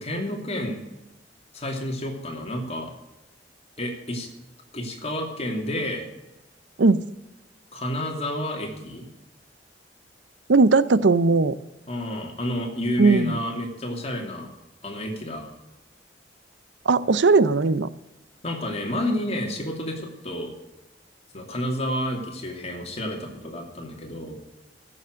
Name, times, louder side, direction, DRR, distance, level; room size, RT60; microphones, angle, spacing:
voice 1, 0.0-0.8 1.5-2.9 3.8-4.3 4.7-6.1 7.7-9.1 11.9-14.5 14.8-15.5 18.4-20.5 21.3-24.4, left 1 dB, 35° left, 2 dB, 2.7 m, -30 dB
voice 2, 10.5-11.6 13.0-13.4 16.9-17.9, right 3 dB, 80° right, 16 dB, 0.6 m, -18 dB
16.0 x 7.1 x 6.4 m, 0.97 s
head